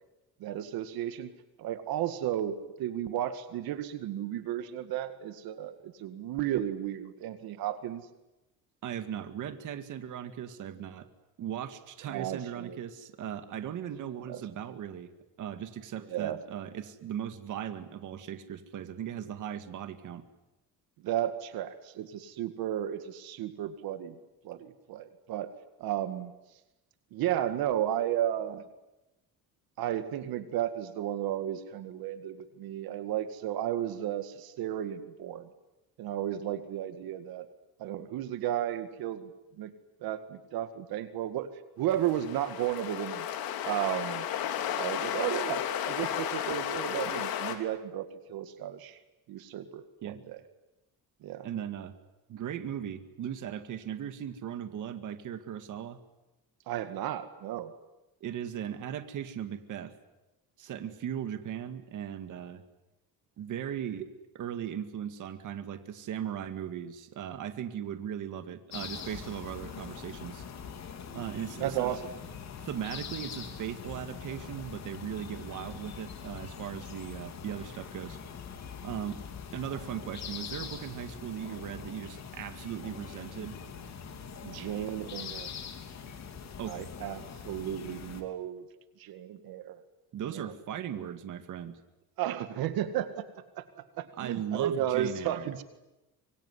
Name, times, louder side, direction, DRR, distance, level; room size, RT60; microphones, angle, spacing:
voice 1, 0.4-1.3 1.6-8.1 12.1-12.8 14.3-14.4 16.1-16.4 21.0-24.2 24.4-25.5 25.8-26.3 27.1-28.6 29.8-35.5 36.0-37.5 37.8-39.3 39.6-39.7 40.0-41.5 41.8-43.3 43.6-44.3 44.8-49.0 49.3-50.4 51.2-51.5 56.7-57.7 71.6-72.0 84.4-85.5 86.7-88.6 89.0-89.8 90.3-90.5 92.2-93.2 93.6-93.7 94.0-95.6, right 11 dB, 80° right, 10 dB, 2.1 m, -33 dB
voice 2, 8.8-11.1 11.4-15.1 15.4-20.2 50.0-50.2 51.4-51.9 52.3-56.0 58.2-59.9 60.6-62.6 63.4-64.1 64.3-70.4 71.1-72.0 72.6-78.2 78.8-79.2 79.5-83.6 86.6-86.8 90.1-91.8 94.2-95.6, right 9 dB, 55° right, 9 dB, 2.1 m, -38 dB
sound 1, 41.9-47.6, left 10 dB, 75° left, 3.4 m, -33 dB
sound 2, 68.7-88.2, left 7 dB, 50° left, 3.5 m, -43 dB
25.5 x 23.0 x 9.9 m, 0.99 s
cardioid pair, 140°, 36 cm